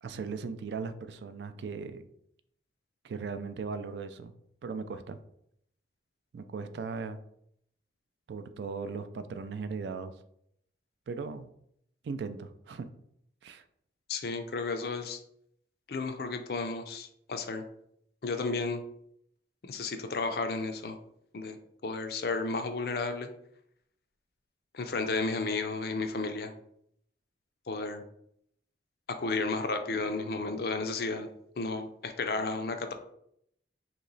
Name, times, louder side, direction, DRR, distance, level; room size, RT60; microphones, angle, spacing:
voice 1, 0.0-2.1 3.0-4.3 4.6-5.2 6.3-7.2 8.3-10.1 11.1-11.5 12.0-12.9 13.4-13.6, right 5 dB, 70° right, 10 dB, 0.3 m, -38 dB
voice 2, 14.1-15.2 15.9-17.6 18.2-18.8 19.6-21.0 21.3-21.6 21.8-23.3 24.7-26.5 27.7-28.0 29.1-31.3 31.6-32.9, left 3 dB, 55° left, 7 dB, 0.4 m, -33 dB
3.0 x 3.0 x 3.9 m, 0.72 s
head